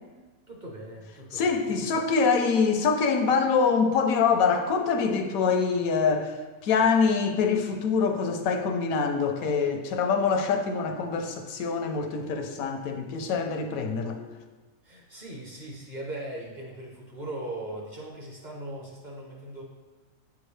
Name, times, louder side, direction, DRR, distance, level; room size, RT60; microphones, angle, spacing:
voice 1, 0.5-1.8 14.8-19.6, right 1 dB, 40° right, -2 dB, 0.8 m, -39 dB
voice 2, 1.3-14.2, left 5 dB, 80° left, 5 dB, 1.1 m, -25 dB
8.1 x 3.6 x 3.2 m, 1.3 s
omnidirectional pair, 1.5 m